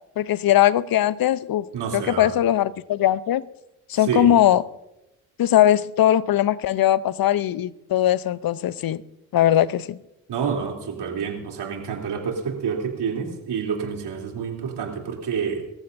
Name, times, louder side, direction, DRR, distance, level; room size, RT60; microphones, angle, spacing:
voice 1, 0.2-1.7 1.9-3.4 3.9-4.6 5.4-9.0 9.3-10.0, left 12 dB, 50° left, 0.7 m, -20 dB
voice 2, 1.7-2.3 3.9-4.3 10.3-15.6, right 6 dB, 65° right, 3.3 m, -28 dB
24.5 x 14.0 x 2.7 m
hypercardioid pair, 45°, 44 cm